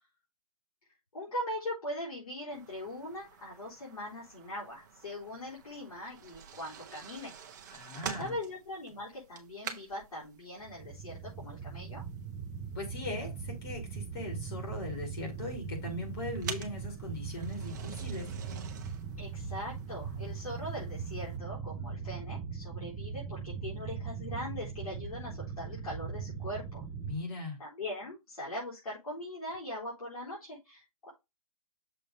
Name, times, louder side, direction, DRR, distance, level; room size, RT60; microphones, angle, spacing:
voice 1, 1.1-7.3 8.2-12.0 19.2-26.8 27.6-31.1, left 1 dB, 75° left, 3.9 m, -41 dB
sound 1, 2.5-21.4, right 7 dB, 30° right, 0.9 m, -48 dB
voice 2, 7.7-8.3 12.7-18.3 27.0-27.6, left 2 dB, 40° left, 2.7 m, -39 dB
sound 2, 10.6-27.2, right 6 dB, 10° right, 0.5 m, -40 dB
6.8 x 3.3 x 5.1 m
hypercardioid pair, 165°, 19 cm